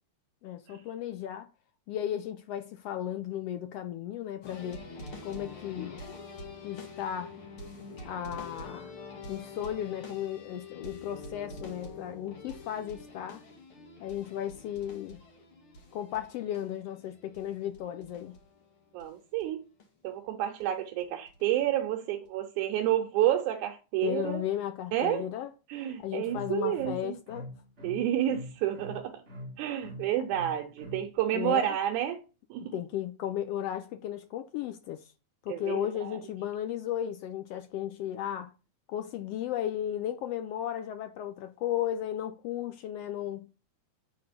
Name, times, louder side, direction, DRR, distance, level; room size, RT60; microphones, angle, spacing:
voice 1, 0.4-1.5 1.9-4.9 5.2-6.0 6.6-7.3 8.0-8.9 9.3-13.4 14.0-15.2 15.9-18.4 24.0-25.5 26.0-27.5 31.3-31.8 32.7-35.1 35.4-38.5 38.9-43.5, left 11 dB, 80° left, 1.4 m, -35 dB
sound 1, 4.4-19.1 19.4-19.5 19.8-19.9 20.6-20.7 21.0-21.6 22.3-22.4, left 3 dB, 50° left, 2.1 m, -46 dB
voice 2, 18.9-19.6 20.0-24.4 24.9-25.2 25.7-27.1 27.8-29.2 29.6-32.2 32.5-32.8 35.5-36.2, right 11 dB, 85° right, 2.2 m, -30 dB
sound 2, 26.0-31.1, equal, 25° right, 1.8 m, -43 dB
8.5 x 3.9 x 5.1 m
omnidirectional pair, 3.4 m